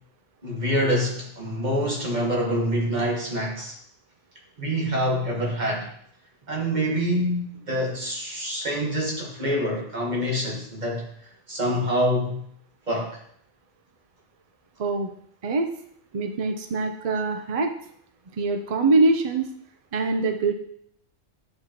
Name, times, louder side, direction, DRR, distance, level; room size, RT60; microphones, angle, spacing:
voice 1, 0.4-3.8 4.6-5.9 6.5-11.1 11.5-12.4 12.9-13.2, equal, 35° right, -2 dB, 1.5 m, -26 dB
voice 2, 14.8-15.1 15.4-15.7 16.1-17.7 18.4-19.5 19.9-20.5, right 3 dB, 55° right, 6 dB, 0.4 m, -23 dB
9.5 x 4.9 x 2.9 m, 0.67 s
omnidirectional pair, 1.3 m